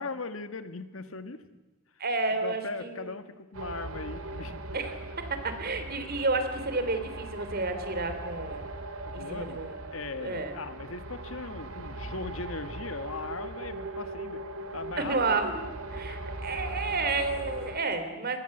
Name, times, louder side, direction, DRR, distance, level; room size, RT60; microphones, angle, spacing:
voice 1, 0.0-1.5 2.4-4.8 9.1-9.6 9.9-14.4 14.7-15.4 15.9-16.2, left 3 dB, 70° left, 10 dB, 1.7 m, -39 dB
voice 2, 2.0-3.1 4.7-8.7 9.1-9.7 10.2-10.5 15.0-15.6 15.9-18.4, right 3 dB, 45° right, 9 dB, 3.4 m, -31 dB
sound 1, 3.5-17.8, right 2 dB, 80° right, 2.6 m, -39 dB
26.0 x 21.5 x 7.9 m, 1.1 s
head